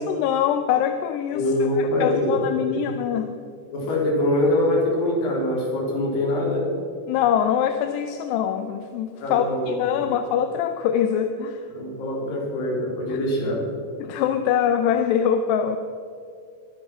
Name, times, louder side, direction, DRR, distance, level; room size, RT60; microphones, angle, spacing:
voice 1, 0.1-3.3 7.1-11.6 13.1-13.2 14.0-15.8, left 9 dB, 85° left, 7 dB, 2.8 m, -23 dB
voice 2, 1.3-2.8 3.7-6.7 9.2-10.1 11.7-13.7, left 1 dB, 60° left, -2 dB, 4.7 m, -24 dB
22.5 x 8.0 x 5.9 m, 2.3 s
omnidirectional pair, 4.8 m